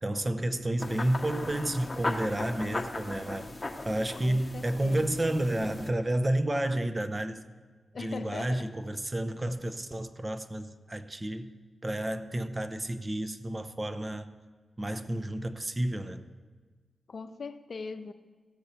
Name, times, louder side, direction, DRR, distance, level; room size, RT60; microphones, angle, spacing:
voice 1, 0.0-3.5 3.8-7.4 8.0-11.5 11.8-14.3 14.8-16.3, right 1 dB, 30° right, 10 dB, 0.7 m, -31 dB
sound 1, 0.8-5.9, left 2 dB, 30° left, 0.9 m, -38 dB
voice 2, 4.2-5.1 7.9-8.7 17.1-18.1, left 4 dB, 60° left, 9 dB, 0.6 m, -40 dB
16.0 x 6.7 x 4.3 m, 1.4 s
cardioid pair, 50°, 0 cm